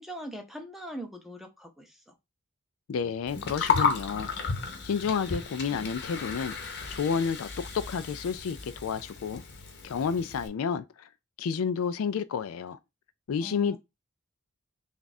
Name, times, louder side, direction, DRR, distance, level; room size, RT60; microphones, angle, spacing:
voice 1, 0.0-2.1 13.4-13.8, equal, ahead, 0.6 m, -41 dB
voice 2, 2.9-4.3 4.8-6.5 6.9-9.4 9.8-11.1 11.4-12.8 13.3-13.8, left 6 dB, 70° left, 0.4 m, -30 dB
Gurgling, 3.3-10.5, left 5 dB, 50° left, 0.8 m, -33 dB
3.5 x 2.4 x 4.1 m
head